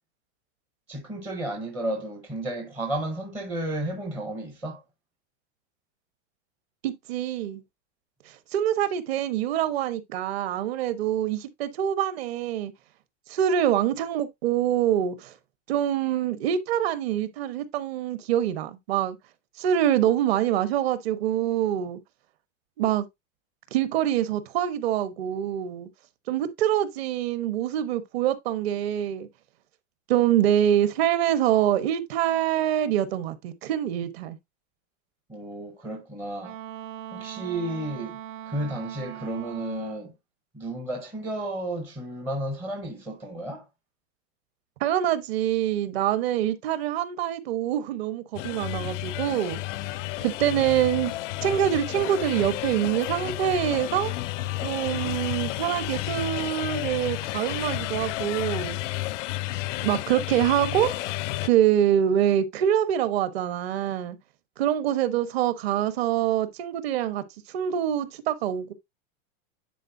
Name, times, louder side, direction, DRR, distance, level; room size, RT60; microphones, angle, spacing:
voice 1, 0.9-4.8 35.3-36.6 37.1-38.2 38.5-40.1 40.5-43.7, right 1 dB, 5° right, 0.5 m, -32 dB
voice 2, 6.8-7.6 8.3-12.7 13.3-15.3 15.7-19.2 19.6-22.0 22.8-23.0 23.7-25.9 26.3-29.3 30.1-34.4 44.8-49.6 50.2-51.1 51.4-54.1 54.6-58.8 59.8-61.0 61.4-64.2 64.6-67.2 67.5-68.7, right 11 dB, 50° right, 1.1 m, -25 dB
Wind instrument woodwind instrument, 36.4-40.1, right 11 dB, 75° right, 1.2 m, -40 dB
sound 1, 48.3-61.5, left 17 dB, 70° left, 0.5 m, -31 dB
10.0 x 4.1 x 2.5 m
supercardioid pair, 175°, 39 cm